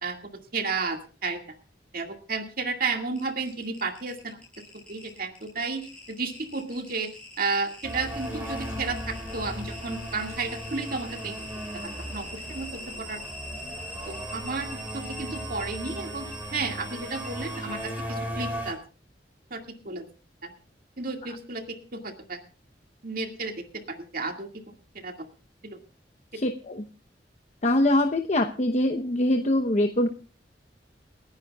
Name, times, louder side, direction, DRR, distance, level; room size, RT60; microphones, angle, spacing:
voice 1, 0.0-1.4 1.9-4.4 4.9-7.1 7.4-11.4 11.7-12.7 13.0-13.2 14.1-18.8 19.5-20.0 20.4-20.5 21.0-22.4 23.0-24.5 24.9-25.1 25.6-25.8, right 4 dB, 55° right, 4 dB, 2.1 m, -32 dB
sound 1, 3.1-18.0, equal, 5° left, 5.8 m, -43 dB
sound 2, 7.8-18.7, equal, 10° right, 5.0 m, -37 dB
voice 2, 26.4-26.8 27.6-30.1, left 1 dB, 40° left, 5 dB, 0.9 m, -23 dB
29.5 x 10.5 x 2.3 m, 0.34 s
head